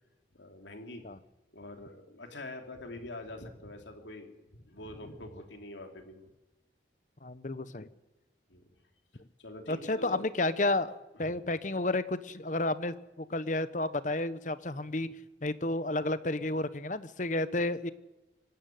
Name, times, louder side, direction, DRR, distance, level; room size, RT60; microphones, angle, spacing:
voice 1, 0.3-1.0 1.5-6.2 8.5-8.7 9.4-10.3 11.2-11.4, left 1 dB, 80° left, 4 dB, 3.3 m, -45 dB
voice 2, 7.2-7.9 9.7-15.1 15.4-17.9, left 2 dB, 45° left, 14 dB, 1.0 m, -31 dB
25.0 x 13.0 x 9.3 m, 1.0 s
head